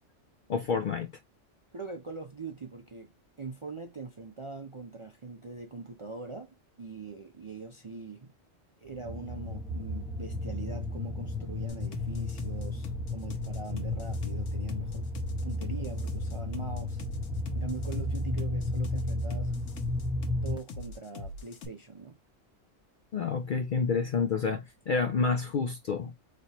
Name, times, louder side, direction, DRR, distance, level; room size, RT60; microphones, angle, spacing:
voice 1, 0.5-1.1 23.1-26.1, left 5 dB, 60° left, 0.5 m, -29 dB
voice 2, 1.7-8.3 8.8-15.1 15.4-17.0 17.5-19.6 20.4-22.2, right 4 dB, 40° right, 0.4 m, -42 dB
sound 1, 8.9-20.6, left 2 dB, 5° right, 0.7 m, -33 dB
sound 2, 11.7-21.7, left 1 dB, 85° left, 1.2 m, -41 dB
4.3 x 3.1 x 2.9 m
omnidirectional pair, 1.3 m